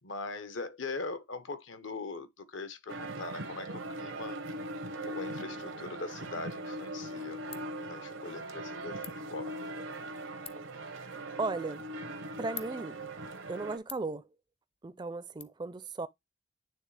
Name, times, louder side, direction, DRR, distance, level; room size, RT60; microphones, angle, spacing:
voice 1, 0.0-4.4 5.0-7.4 7.8-9.8, left 3 dB, 75° left, 1.0 m, -41 dB
sound 1, 2.9-13.8, right 1 dB, 90° right, 1.0 m, -40 dB
Ratchet pawl, 6.3-15.4, left 10 dB, 30° left, 0.6 m, -53 dB
voice 2, 11.4-11.8 12.4-13.0 13.5-14.3 14.8-16.1, right 3 dB, 25° right, 0.4 m, -36 dB
9.3 x 3.5 x 3.2 m
head